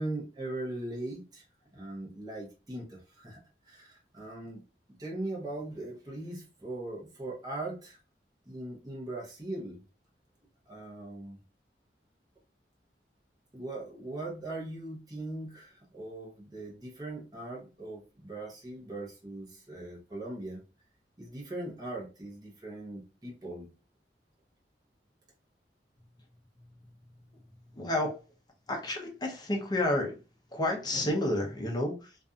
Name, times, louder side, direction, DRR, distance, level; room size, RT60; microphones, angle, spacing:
voice 1, 0.0-1.4 1.7-3.4 3.7-4.6 5.0-8.0 8.5-9.8 10.7-11.4 13.5-20.6 21.2-23.7 30.9-31.1, right 2 dB, 20° right, -4 dB, 0.7 m, -40 dB
voice 2, 27.7-28.2 28.7-30.2 30.5-32.2, left 1 dB, 25° left, 1 dB, 0.6 m, -30 dB
2.6 x 2.4 x 2.3 m, 0.33 s
head